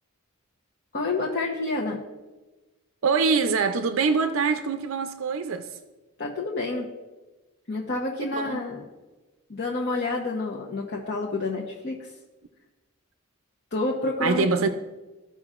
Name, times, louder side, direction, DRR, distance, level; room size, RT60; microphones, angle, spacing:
voice 1, 0.9-2.0 6.2-6.9 7.7-8.8 9.5-12.1 13.7-14.5, left 2 dB, 50° left, -3 dB, 0.9 m, -29 dB
voice 2, 3.0-5.8 8.2-8.6 14.2-14.7, right 4 dB, 70° right, 8 dB, 0.5 m, -24 dB
14.5 x 5.4 x 2.4 m, 1.2 s
head